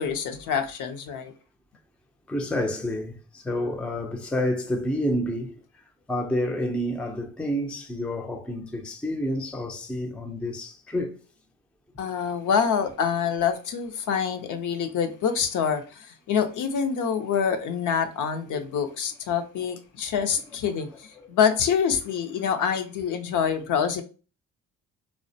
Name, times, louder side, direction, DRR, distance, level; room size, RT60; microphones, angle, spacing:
voice 1, 0.0-1.3 12.0-24.0, left 7 dB, 60° left, 0.5 m, -26 dB
voice 2, 2.3-11.2 18.5-18.6 21.2-21.3, left 1 dB, 5° left, 0.4 m, -29 dB
2.3 x 2.1 x 2.6 m
supercardioid pair, 70°, 35 cm